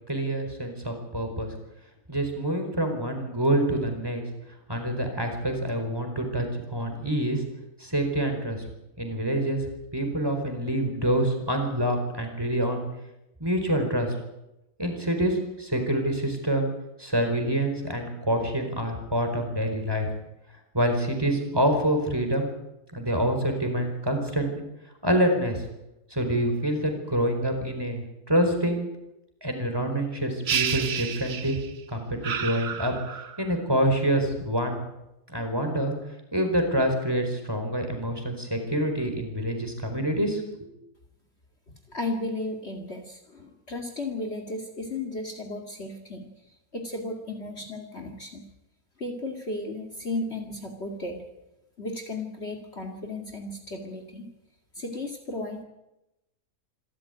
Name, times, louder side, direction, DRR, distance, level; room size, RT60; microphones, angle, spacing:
voice 1, 0.1-1.5 2.1-4.2 4.7-7.4 7.8-8.6 9.0-9.6 9.9-12.8 13.4-14.1 14.8-16.7 17.0-20.1 20.7-22.5 22.9-24.6 25.0-25.6 26.1-28.9 29.4-31.6 31.9-32.9 33.4-34.8 35.3-35.9 36.3-40.7, right 1 dB, 15° right, 5 dB, 4.5 m, -26 dB
sound 1, 30.5-31.8 32.2-33.5, right 7 dB, 45° right, 1.1 m, -30 dB
voice 2, 41.9-48.5 49.0-51.2 51.8-54.3 54.7-55.6, left 2 dB, 40° left, 2 dB, 2.5 m, -34 dB
26.5 x 14.0 x 9.2 m, 0.93 s
omnidirectional pair, 1.6 m